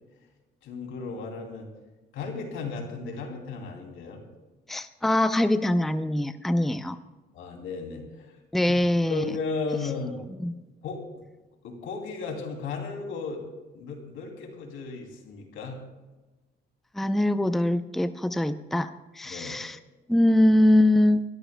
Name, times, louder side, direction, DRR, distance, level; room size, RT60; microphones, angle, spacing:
voice 1, 0.6-1.7 2.1-4.2 7.3-8.3 8.6-8.8 9.1-10.2 10.8-11.2 11.6-13.4 13.7-15.8 19.2-19.6, left 4 dB, 85° left, 2 dB, 2.8 m, -35 dB
voice 2, 4.7-7.0 8.5-9.2 10.4-10.5 16.9-19.8 20.1-21.2, left 1 dB, ahead, 10 dB, 0.5 m, -23 dB
26.5 x 13.0 x 2.2 m, 1.2 s
cardioid pair, 90°, 20 cm